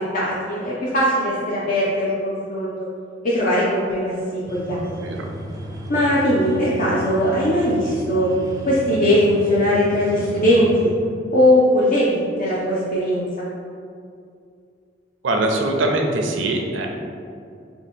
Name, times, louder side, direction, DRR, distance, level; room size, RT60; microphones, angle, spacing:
voice 1, 0.1-2.7 3.2-4.9 5.9-8.3 8.7-10.9 11.3-13.5, equal, 45° left, -7 dB, 0.4 m, -20 dB
sound 1, 4.5-10.9, equal, 20° right, 0.4 m, -34 dB
voice 2, 15.2-16.9, right 2 dB, 85° right, 3 dB, 0.5 m, -22 dB
2.8 x 2.7 x 4.2 m, 2.4 s
head